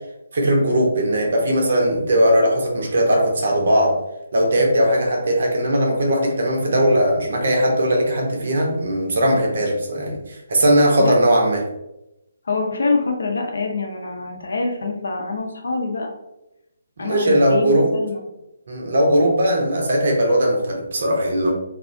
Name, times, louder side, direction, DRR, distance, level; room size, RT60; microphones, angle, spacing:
voice 1, 0.3-4.0 4.3-11.6 17.0-17.9 18.7-21.5, equal, 55° right, 0 dB, 0.6 m, -19 dB
voice 2, 12.4-16.1 17.0-18.2, left 3 dB, 65° left, 1 dB, 0.5 m, -25 dB
2.4 x 2.1 x 2.5 m, 0.90 s
figure-of-eight pair, 140°, 0 cm